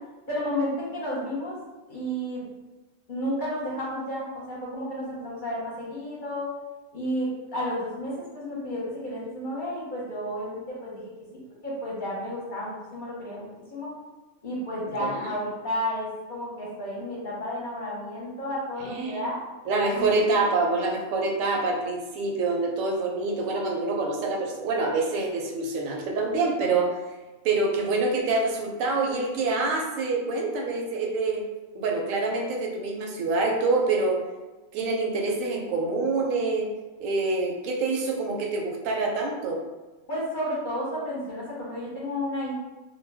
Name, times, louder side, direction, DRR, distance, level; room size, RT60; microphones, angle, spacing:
voice 1, 0.3-1.6 1.9-2.4 3.1-6.5 6.9-10.9 11.6-13.9 14.4-19.4 19.9-20.2 40.1-42.5, equal, 45° left, -6 dB, 0.8 m, -32 dB
voice 2, 15.0-15.3 18.8-19.3 19.7-26.9 27.4-31.5 31.7-34.2 34.7-36.7 37.0-39.6, right 3 dB, 85° right, 1 dB, 1.0 m, -26 dB
2.3 x 2.1 x 3.3 m, 1.2 s
omnidirectional pair, 1.3 m